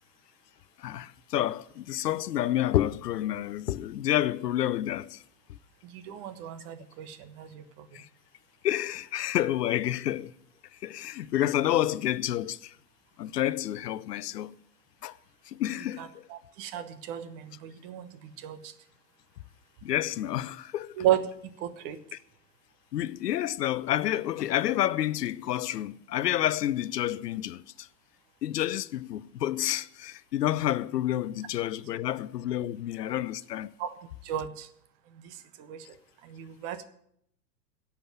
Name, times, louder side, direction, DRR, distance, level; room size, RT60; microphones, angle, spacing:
voice 1, 0.8-5.2 7.9-8.1 8.6-10.3 10.7-12.8 13.2-14.6 15.0-15.2 15.5-16.3 19.8-21.0 22.1-22.2 22.9-27.9 28.4-33.7, left 12 dB, 75° left, 0.7 m, -29 dB
voice 2, 5.8-8.0 16.0-18.7 21.0-21.3 21.6-22.0 33.8-33.9 34.2-34.7 35.1-36.0 36.2-36.8, right 11 dB, 40° right, 1.3 m, -34 dB
11.5 x 7.2 x 9.2 m
hypercardioid pair, 110°, 49 cm